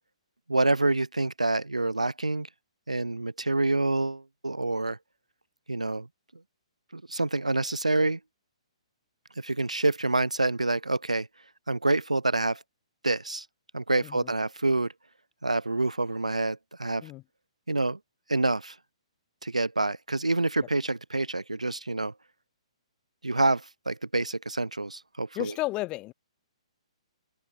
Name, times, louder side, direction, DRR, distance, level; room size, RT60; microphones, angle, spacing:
voice 1, 0.5-2.5 2.9-5.0 5.7-6.1 6.9-8.2 9.4-11.3 11.7-12.6 13.0-13.4 13.7-14.9 15.4-17.1 17.7-18.0 18.3-18.7 19.4-22.1 23.2-25.5, right 2 dB, 90° right, 1.7 m, -27 dB
voice 2, 25.4-26.1, left 19 dB, 25° left, 3.8 m, -32 dB
open air
figure-of-eight pair, 125°, 3 cm